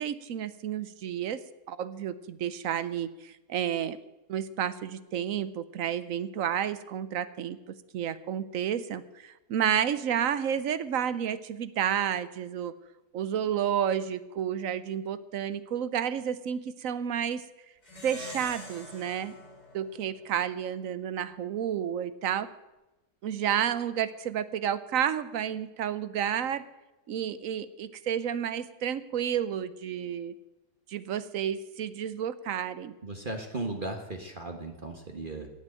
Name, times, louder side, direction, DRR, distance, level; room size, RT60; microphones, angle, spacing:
voice 1, 0.0-1.4 1.7-4.0 4.3-12.7 13.1-17.4 18.0-19.3 19.7-22.5 23.2-26.6 27.1-30.3 30.9-32.9, right 9 dB, 65° right, 15 dB, 1.0 m, -31 dB
Plucked string instrument, 17.8-20.6, left 1 dB, 75° left, 5.4 m, -45 dB
voice 2, 33.0-35.5, right 2 dB, 35° right, 4 dB, 1.4 m, -36 dB
17.0 x 6.2 x 8.9 m, 1.0 s
omnidirectional pair, 1.7 m